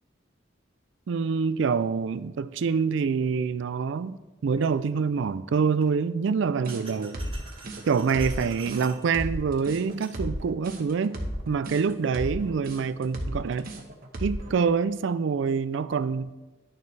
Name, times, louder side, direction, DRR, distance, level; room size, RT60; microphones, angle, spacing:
voice 1, 1.1-7.2 7.9-11.2 11.5-13.7 14.2-16.3, right 5 dB, 65° right, 15 dB, 0.4 m, -26 dB
sound 1, 4.6-4.7 5.8-5.9 6.6-9.0 9.8-10.1, right 3 dB, 30° right, 1.9 m, -46 dB
sound 2, 6.6-14.5, right 1 dB, 50° right, 1.1 m, -34 dB
10.5 x 6.7 x 3.3 m, 1.2 s
head